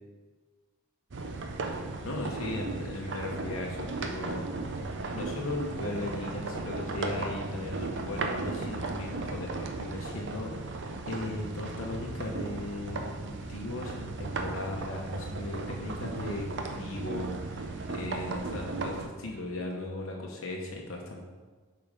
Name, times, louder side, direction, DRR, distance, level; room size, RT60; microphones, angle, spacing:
sound 1, 1.1-19.1, right 3 dB, 55° right, 0.6 m, -36 dB
voice 1, 1.7-4.5 5.1-10.8 11.1-21.2, left 2 dB, 70° left, 0 dB, 0.8 m, -37 dB
7.2 x 4.3 x 5.1 m, 1.4 s
head